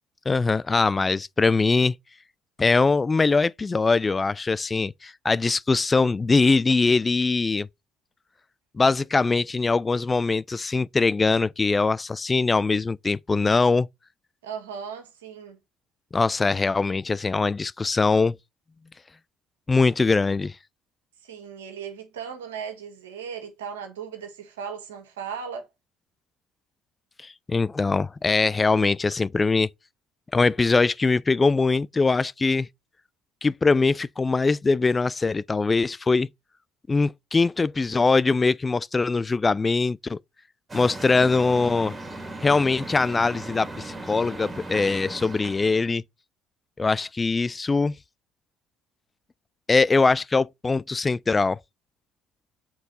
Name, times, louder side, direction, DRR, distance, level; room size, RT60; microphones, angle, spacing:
voice 1, 0.3-1.9 2.6-7.7 8.8-13.9 16.1-18.4 19.7-20.5 27.2-29.7 30.3-32.7 33.4-36.3 36.9-40.2 40.7-41.9 42.4-46.0 46.8-47.9 49.7-51.6, left 4 dB, 25° left, 0.3 m, -22 dB
voice 2, 14.4-15.6 21.2-25.7, right 7 dB, 85° right, 1.5 m, -37 dB
sound 1, 40.7-45.9, right 2 dB, 25° right, 2.2 m, -37 dB
7.0 x 4.0 x 4.0 m
hypercardioid pair, 60°, 0 cm